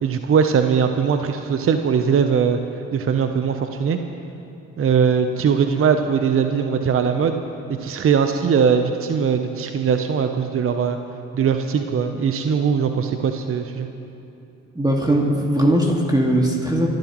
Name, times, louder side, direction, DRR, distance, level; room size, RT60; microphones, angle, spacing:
voice 1, 0.0-2.6 2.9-4.0 4.8-7.4 7.8-11.0 11.3-13.9, right 6 dB, 35° right, 7 dB, 0.8 m, -20 dB
voice 2, 14.8-16.9, right 1 dB, 10° right, -1 dB, 2.0 m, -19 dB
28.5 x 12.0 x 3.1 m, 2.9 s
hypercardioid pair, 55°, 37 cm